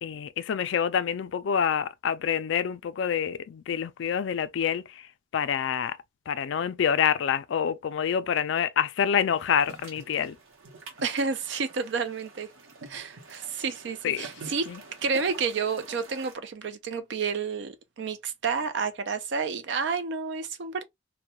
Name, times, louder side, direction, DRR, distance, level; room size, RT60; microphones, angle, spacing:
voice 1, 0.0-6.0 6.3-10.4 14.0-14.2 14.7-14.8, left 8 dB, 65° left, 0.3 m, -27 dB
sound 1, 9.3-16.3, right 3 dB, 85° right, 0.8 m, -47 dB
voice 2, 11.0-12.5 12.8-14.7 15.0-20.8, right 5 dB, 60° right, 0.4 m, -30 dB
2.2 x 2.1 x 2.8 m
head